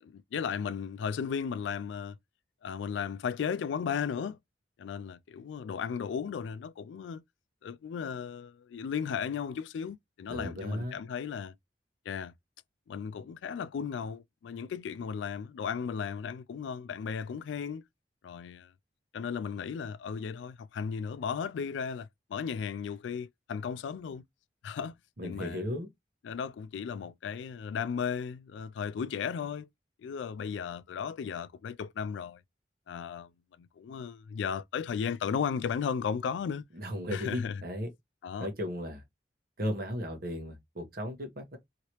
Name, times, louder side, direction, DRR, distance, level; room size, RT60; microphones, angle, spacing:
voice 1, 0.0-2.2 2.6-4.4 4.8-7.2 7.6-11.5 12.1-12.3 12.9-17.8 18.2-18.7 19.1-24.2 24.6-25.0 25.2-25.6 26.2-29.7 30.0-32.4 32.9-33.3 33.6-36.6 37.1-37.6 38.2-38.5, left 6 dB, 85° left, 0.3 m, -35 dB
voice 2, 10.3-11.0 25.2-25.9 36.7-37.9 38.4-39.0 39.6-41.6, equal, 55° right, 1.0 m, -35 dB
3.1 x 2.8 x 2.9 m
head